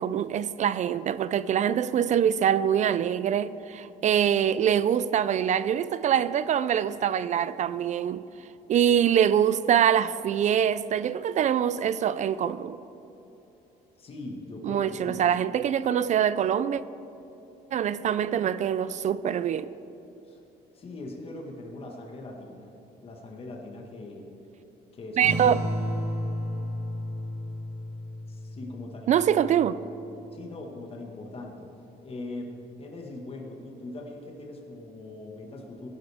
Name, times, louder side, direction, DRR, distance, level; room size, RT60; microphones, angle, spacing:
voice 1, 0.0-8.3 8.7-12.8 14.6-16.8 17.7-19.7 25.2-25.6 29.1-29.8, right 9 dB, 45° right, 0.4 m, -24 dB
voice 2, 14.0-15.4 20.3-20.4 20.7-22.7 23.0-24.3 24.9-25.6 28.3-29.6 30.3-31.7 32.0-35.9, left 2 dB, 35° left, 1.6 m, -41 dB
sound 1, 25.2-30.2, equal, 80° right, 2.4 m, -33 dB
16.0 x 11.5 x 3.5 m
cardioid pair, 110°, 17 cm